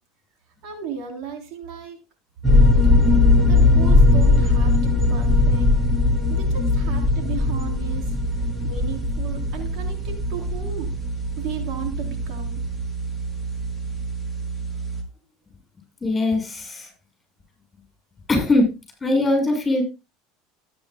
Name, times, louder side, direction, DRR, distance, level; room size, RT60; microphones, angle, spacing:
voice 1, 0.6-2.0 3.4-5.7 6.3-8.1 8.6-10.9 11.4-12.7, right 7 dB, 60° right, 3 dB, 3.4 m, -35 dB
sound 1, 2.4-15.0, left 2 dB, 10° right, 3.7 m, -20 dB
voice 2, 16.0-16.9 18.3-18.7 19.0-19.8, left 2 dB, 20° left, 2 dB, 6.9 m, -20 dB
16.5 x 9.5 x 2.2 m, 0.26 s
hypercardioid pair, 85°, 0 cm